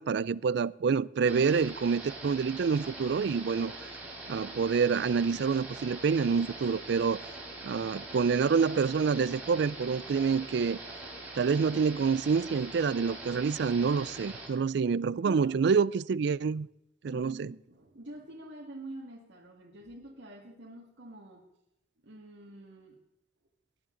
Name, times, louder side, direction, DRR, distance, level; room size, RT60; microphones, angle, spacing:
voice 1, 0.0-3.7 4.3-7.2 7.6-10.8 11.4-16.7 17.1-17.5, right 5 dB, 60° right, 0.4 m, -27 dB
sound 1, 1.3-14.5, right 2 dB, 10° right, 4.0 m, -43 dB
voice 2, 15.2-15.6 17.1-21.5 22.0-23.0, right 1 dB, 75° right, 2.0 m, -47 dB
19.5 x 11.0 x 3.9 m
head